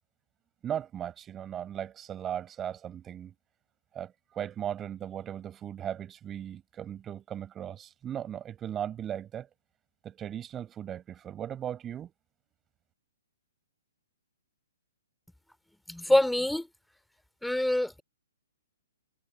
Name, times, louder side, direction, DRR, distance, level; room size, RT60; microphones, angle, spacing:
voice 1, 0.6-3.3 3.9-9.5 10.0-12.1, right 10 dB, 20° right, 6.5 m, -37 dB
voice 2, 15.9-16.7 17.4-18.0, left 1 dB, ahead, 3.4 m, -25 dB
figure-of-eight pair, 125°, 0 cm